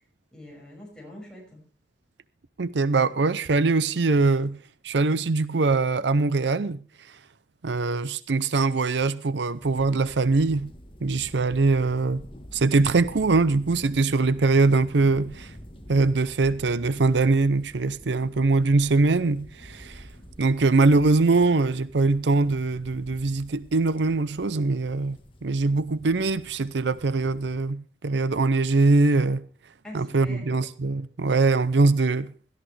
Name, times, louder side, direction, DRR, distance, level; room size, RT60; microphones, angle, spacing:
voice 1, 0.3-1.6 29.8-30.6, left 1 dB, 5° left, 6.0 m, -44 dB
voice 2, 2.6-4.6 4.8-6.8 7.6-10.7 11.0-12.2 12.5-15.5 15.9-20.1 20.4-29.4 29.9-32.3, right 3 dB, 85° right, 0.7 m, -22 dB
sound 1, 9.5-27.6, equal, 30° left, 1.5 m, -47 dB
17.0 x 13.5 x 3.3 m
head